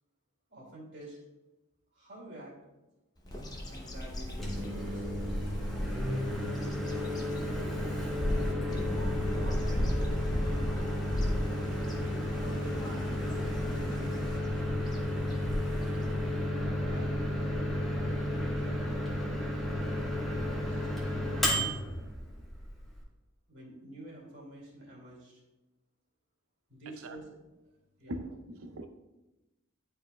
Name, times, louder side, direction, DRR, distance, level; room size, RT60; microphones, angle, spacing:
voice 1, 0.5-1.2 1.9-2.5 3.7-5.1 9.3-10.7 12.3-13.1 13.7-14.8 16.7-17.6 18.4-18.9 20.3-21.5 23.5-25.4 26.7-27.3 28.0-28.1, right 1 dB, 60° right, -3 dB, 2.3 m, -48 dB
Bird vocalization bird call bird song, 3.2-16.5, equal, 20° left, 0.7 m, -36 dB
Microwave oven, 4.2-23.0, left 1 dB, ahead, 1.1 m, -33 dB
voice 2, 28.1-28.9, right 1 dB, 80° right, 7 dB, 0.6 m, -40 dB
10.5 x 4.7 x 2.3 m, 1.0 s
head